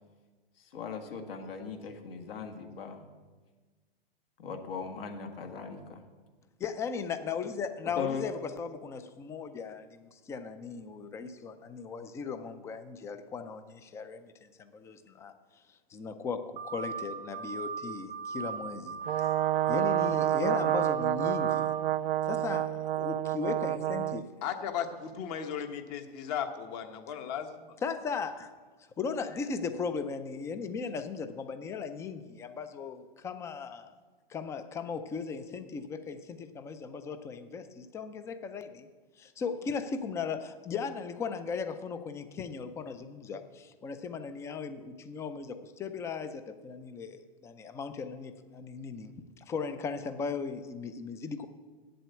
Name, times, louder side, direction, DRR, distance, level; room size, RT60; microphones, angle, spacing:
voice 1, 0.7-3.0 4.4-6.0 8.0-8.3, left 5 dB, 70° left, 5 dB, 1.8 m, -38 dB
voice 2, 6.6-15.3 15.9-19.0 19.7-21.7 22.3-24.2 27.8-28.5 29.0-33.9 34.3-38.9 39.2-51.5, left 5 dB, 10° left, 11 dB, 0.4 m, -37 dB
sound 1, 16.6-17.0 17.3-17.8 18.1-18.6 18.9-19.3 19.6-20.1 20.4-20.9 21.2-21.7, right 6 dB, 25° right, 0.6 m, -37 dB
Brass instrument, 19.1-24.2, right 13 dB, 75° right, 0.5 m, -29 dB
voice 3, 24.4-27.8, left 8 dB, 40° left, 7 dB, 1.2 m, -36 dB
8.2 x 7.7 x 8.1 m, 1.3 s
hypercardioid pair, 135°, 30 cm